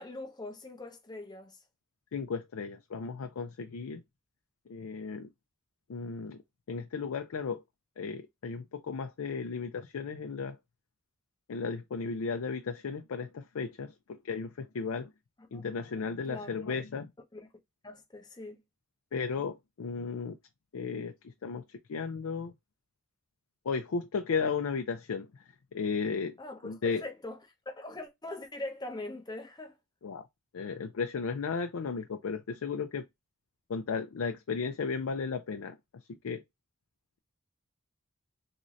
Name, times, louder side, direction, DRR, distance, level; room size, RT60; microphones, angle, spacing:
voice 1, 0.0-1.6 15.5-15.6 16.2-16.6 17.3-17.5 17.8-18.6 26.4-27.4 27.7-29.7, left 2 dB, 20° left, 0.7 m, -42 dB
voice 2, 2.1-4.0 4.7-5.3 5.9-6.4 6.7-7.6 8.0-10.6 11.5-15.1 15.5-17.1 19.1-20.4 20.7-22.5 23.6-25.4 25.7-26.4 26.6-27.0 30.0-30.3 30.5-33.1 33.7-36.4, left 5 dB, 90° left, 0.4 m, -35 dB
3.6 x 2.6 x 3.1 m
head